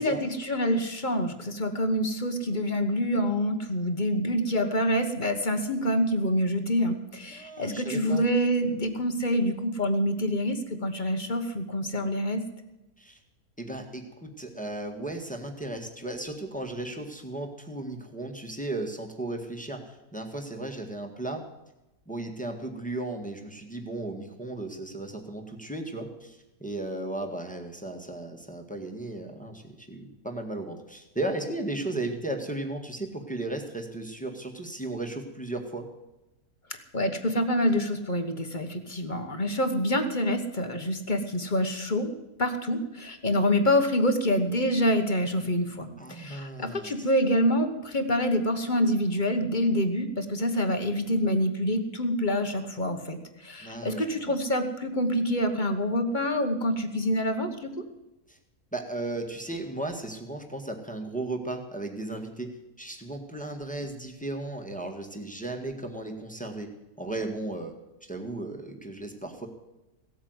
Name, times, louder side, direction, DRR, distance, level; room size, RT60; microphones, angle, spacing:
voice 1, 0.0-12.4 36.7-42.1 42.4-57.8, equal, 30° left, 7 dB, 1.3 m, -26 dB
voice 2, 7.3-8.2 13.0-13.2 13.6-21.4 22.1-35.9 46.0-47.1 53.6-54.3 58.3-58.4 58.7-67.7 68.0-69.5, right 2 dB, 5° left, 4 dB, 1.6 m, -35 dB
17.0 x 8.8 x 8.0 m, 0.97 s
omnidirectional pair, 1.7 m